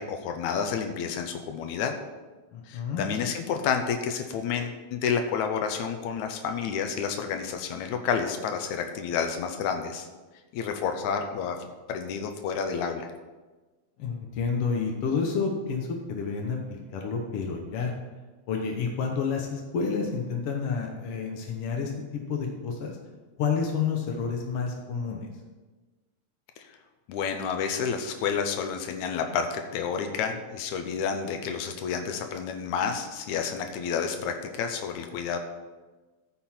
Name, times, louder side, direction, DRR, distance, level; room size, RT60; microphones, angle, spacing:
voice 1, 0.0-1.9 2.7-10.1 10.5-11.6 11.9-13.1 26.6-26.7 27.1-35.4, left 6 dB, 85° left, 5 dB, 2.2 m, -30 dB
voice 2, 2.5-3.1 14.0-17.9 18.5-23.0 23.4-25.3, left 5 dB, 60° left, 1 dB, 1.8 m, -29 dB
14.0 x 5.8 x 4.4 m, 1.2 s
omnidirectional pair, 3.3 m